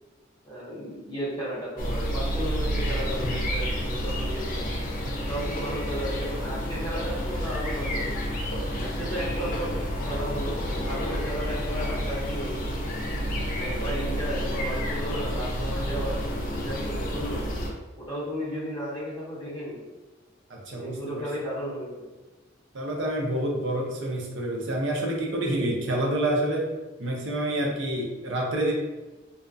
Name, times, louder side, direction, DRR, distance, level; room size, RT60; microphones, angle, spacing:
voice 1, 0.4-4.7 5.2-8.2 8.8-9.7 10.1-10.6 10.8-12.8 13.5-17.5 18.0-19.9 20.7-22.1, equal, 25° left, -9 dB, 1.0 m, -34 dB
sound 1, 1.8-17.7, equal, 45° left, 0.4 m, -29 dB
voice 2, 20.5-21.2 22.7-26.7 27.0-28.7, right 1 dB, 75° right, -1 dB, 0.6 m, -28 dB
2.6 x 2.3 x 2.5 m, 1.2 s
head